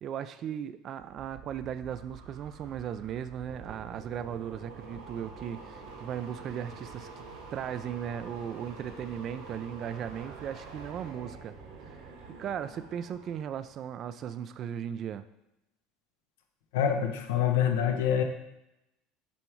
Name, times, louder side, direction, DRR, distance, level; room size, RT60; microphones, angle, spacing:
voice 1, 0.0-7.2 7.5-11.5 11.9-12.0 12.4-15.3, right 9 dB, 45° right, 12 dB, 0.4 m, -37 dB
sound 1, 1.0-13.6 13.9-14.3, right 3 dB, 85° right, 2.3 m, -50 dB
sound 2, 3.5-14.1, right 5 dB, 65° right, 1.3 m, -49 dB
voice 2, 16.7-18.2, left 9 dB, 75° left, 5 dB, 0.8 m, -26 dB
7.0 x 3.5 x 4.5 m, 0.88 s
hypercardioid pair, 85°, 0 cm